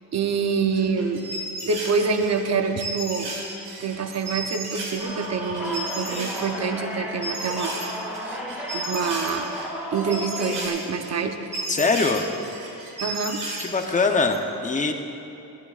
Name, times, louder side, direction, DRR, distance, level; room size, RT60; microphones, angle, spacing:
voice 1, 0.1-1.3 1.6-3.4 3.8-8.4 8.7-9.5 9.9-11.4 13.0-13.5, right 5 dB, 45° right, 6 dB, 0.7 m, -26 dB
sound 1, 0.7-6.5 6.7-8.2 8.5-14.4, right 2 dB, 85° right, 3.1 m, -34 dB
sound 2, 5.0-10.7, equal, 5° right, 2.4 m, -33 dB
voice 2, 11.7-12.2 13.6-14.9, left 4 dB, 20° left, 4 dB, 0.7 m, -22 dB
19.5 x 15.0 x 2.4 m, 2.9 s
wide cardioid pair, 175°, 37 cm